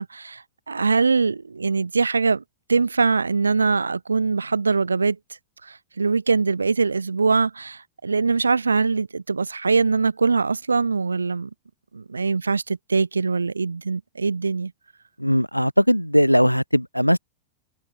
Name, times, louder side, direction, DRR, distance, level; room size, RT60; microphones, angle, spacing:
voice 1, 0.0-2.4 2.7-5.2 5.6-11.5 11.9-14.7, right 4 dB, 75° right, 2.0 m, -22 dB
voice 2, 15.2-17.2, equal, 90° left, 3.9 m, -19 dB
figure-of-eight pair, 90°, 0 cm